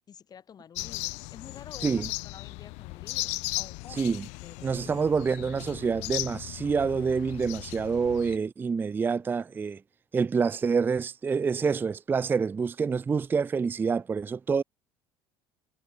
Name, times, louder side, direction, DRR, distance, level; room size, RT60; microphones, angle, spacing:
voice 1, 0.1-5.0, left 8 dB, 35° left, 2.8 m, -50 dB
sound 1, 0.8-8.4, left 27 dB, 80° left, 0.5 m, -37 dB
voice 2, 3.9-4.3 4.6-9.8 10.1-14.6, right 5 dB, 20° right, 0.4 m, -27 dB
cardioid pair, 125°, 11 cm